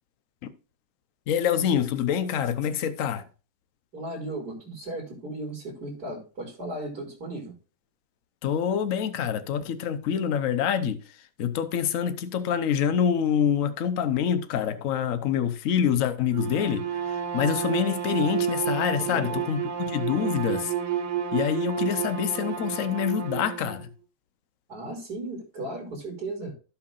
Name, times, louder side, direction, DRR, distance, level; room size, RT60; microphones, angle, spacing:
voice 1, 1.3-3.2 8.4-11.0 11.4-20.7 21.3-23.9, left 8 dB, 55° left, 0.9 m, -26 dB
voice 2, 3.9-7.5 18.9-19.4 24.7-26.5, right 2 dB, 50° right, 3.4 m, -36 dB
Bowed string instrument, 16.3-23.8, right 8 dB, 90° right, 1.9 m, -30 dB
16.0 x 5.8 x 2.5 m
omnidirectional pair, 2.3 m